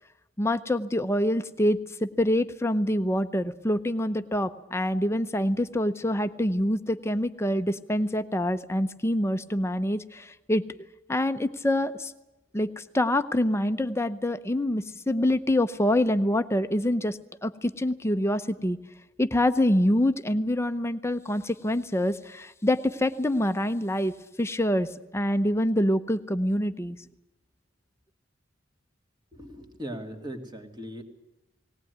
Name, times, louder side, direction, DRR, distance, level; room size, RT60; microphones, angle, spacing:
voice 1, 0.4-10.6 11.1-12.1 12.5-18.8 19.2-27.0, left 1 dB, 15° left, 10 dB, 0.7 m, -26 dB
voice 2, 29.3-31.0, equal, 20° right, 4 dB, 2.4 m, -39 dB
19.0 x 18.5 x 9.4 m, 0.98 s
head